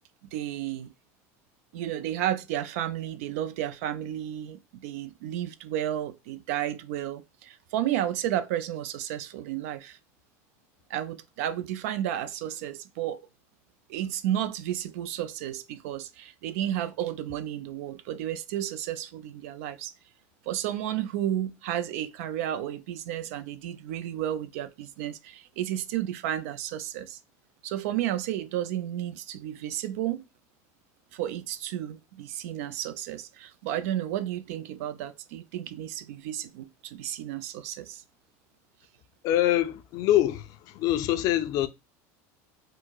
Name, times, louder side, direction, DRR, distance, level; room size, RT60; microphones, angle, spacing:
voice 1, 0.3-0.9 1.7-10.0 10.9-13.2 13.9-19.9 20.5-27.2 27.6-30.2 31.1-38.0, right 11 dB, 75° right, 0.4 m, -32 dB
voice 2, 39.2-41.7, left 13 dB, 50° left, 0.3 m, -24 dB
4.4 x 2.0 x 2.2 m
supercardioid pair, 135°, 8 cm